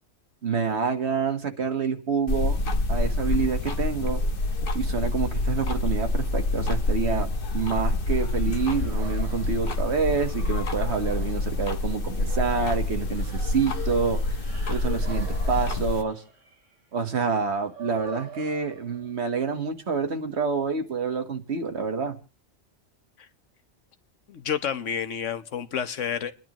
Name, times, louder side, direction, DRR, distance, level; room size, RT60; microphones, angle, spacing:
voice 1, 0.4-2.6 2.9-4.2 4.7-7.3 7.5-16.2 16.9-22.2, right 5 dB, 65° right, 1.6 m, -27 dB
sound 1, 2.3-16.0, left 2 dB, 50° left, 1.1 m, -27 dB
sound 2, 8.3-19.4, right 5 dB, 85° right, 2.1 m, -47 dB
voice 2, 24.3-26.3, left 8 dB, 85° left, 1.3 m, -29 dB
29.5 x 10.5 x 3.0 m
omnidirectional pair, 1.2 m